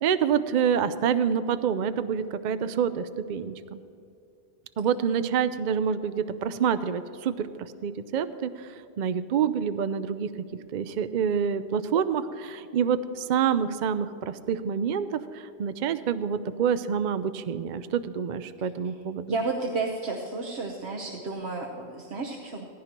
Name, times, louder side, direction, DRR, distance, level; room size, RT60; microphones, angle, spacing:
voice 1, 0.0-3.8 4.8-10.3 10.7-19.3, right 7 dB, 55° right, 11 dB, 0.6 m, -27 dB
voice 2, 19.3-22.7, right 3 dB, 80° right, 0 dB, 1.3 m, -32 dB
18.0 x 15.0 x 3.0 m, 2.7 s
omnidirectional pair, 1.1 m